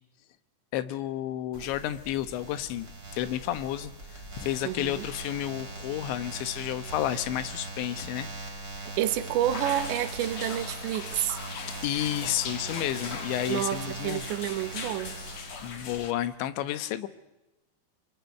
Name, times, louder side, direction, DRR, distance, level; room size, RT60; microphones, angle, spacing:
voice 1, 0.7-8.3 11.8-14.2 15.6-17.1, left 12 dB, 85° left, 3.5 m, -31 dB
sound 1, 1.5-16.0, right 2 dB, 20° right, 5.3 m, -40 dB
voice 2, 4.6-5.1 8.8-11.4 13.5-15.2, right 12 dB, 80° right, 3.7 m, -29 dB
sound 2, 9.5-16.1, left 6 dB, 50° left, 2.4 m, -40 dB
27.0 x 24.0 x 9.3 m
omnidirectional pair, 5.1 m